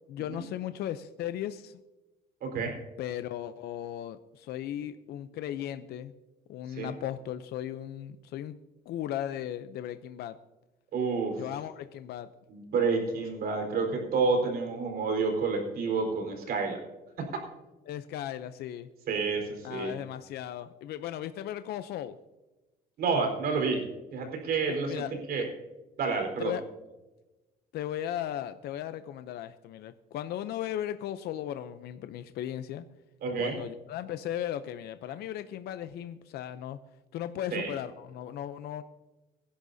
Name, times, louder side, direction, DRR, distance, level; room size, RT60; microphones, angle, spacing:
voice 1, 0.1-1.8 3.0-6.1 6.5-8.6 8.9-10.4 11.4-12.3 17.9-18.9 19.6-22.2 24.7-25.1 26.4-26.6 27.7-32.9 33.4-36.8 37.1-38.8, left 11 dB, 70° left, 11 dB, 0.7 m, -36 dB
voice 2, 2.4-2.7 6.7-6.9 10.9-11.4 12.5-16.8 17.3-17.4 19.1-19.9 23.0-23.8 24.1-25.0 25.3-25.5 26.0-26.5 33.2-33.5 37.5-37.8, right 4 dB, 65° right, 3 dB, 4.5 m, -29 dB
24.5 x 11.5 x 2.8 m, 1.1 s
cardioid pair, 110°, 17 cm